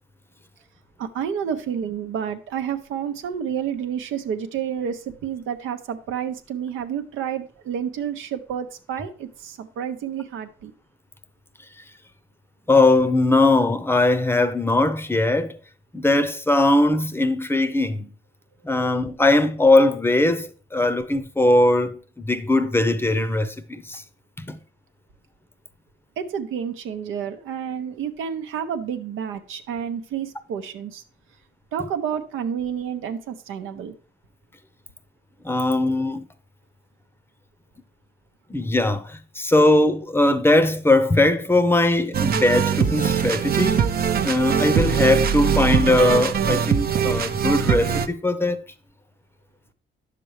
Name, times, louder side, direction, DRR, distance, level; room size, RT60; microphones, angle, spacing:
voice 1, 1.0-10.7 26.2-31.0 31.7-34.0, right 8 dB, 85° right, 0.8 m, -30 dB
voice 2, 12.7-15.6 15.9-18.1 18.6-24.0 24.4-24.6 35.4-36.3 38.5-43.8 44.2-48.6, left 2 dB, 10° left, 0.7 m, -20 dB
sound 1, 42.1-48.1, right 7 dB, 50° right, 0.6 m, -22 dB
9.7 x 6.8 x 3.1 m
cardioid pair, 90°, 20 cm